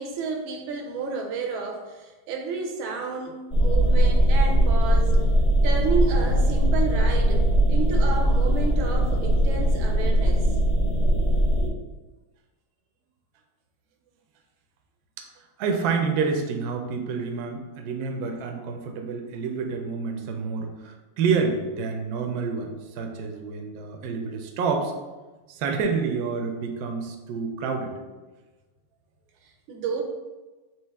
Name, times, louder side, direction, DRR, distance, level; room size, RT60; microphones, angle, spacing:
voice 1, 0.0-5.2 5.6-10.5 29.4-30.0, right 4 dB, 85° right, 3 dB, 1.5 m, -31 dB
sound 1, 3.5-11.7, right 1 dB, 75° left, 0.5 m, -20 dB
voice 2, 15.6-24.9 25.5-27.9, right 5 dB, 70° right, 3 dB, 0.9 m, -28 dB
4.7 x 2.8 x 3.4 m, 1.2 s
omnidirectional pair, 2.2 m